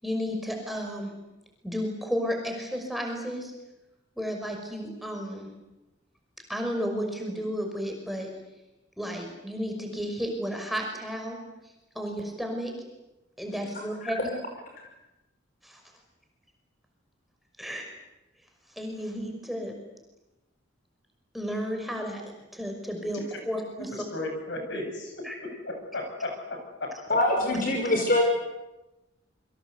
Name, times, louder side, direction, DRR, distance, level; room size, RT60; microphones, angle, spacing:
voice 1, 0.0-1.1 1.6-3.5 4.2-5.5 6.5-8.3 9.0-11.4 12.0-12.7 13.4-14.2 15.6-15.8 17.6-17.9 18.8-19.7 21.3-24.1 25.2-25.4, equal, ahead, 5.7 m, -32 dB
voice 2, 24.1-27.2, left 2 dB, 65° left, 7.9 m, -35 dB
voice 3, 27.1-28.2, left 1 dB, 45° left, 5.2 m, -23 dB
28.5 x 24.5 x 8.2 m
head